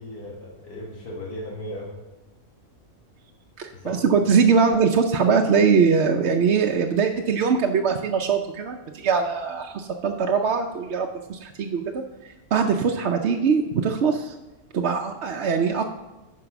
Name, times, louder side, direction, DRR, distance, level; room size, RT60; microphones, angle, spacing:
voice 1, 0.0-2.0 3.7-4.0, left 1 dB, 85° left, -3 dB, 2.2 m, -36 dB
voice 2, 3.6-14.3 14.7-15.9, right 5 dB, 60° right, 3 dB, 0.7 m, -22 dB
11.0 x 4.7 x 5.9 m, 1.0 s
omnidirectional pair, 1.6 m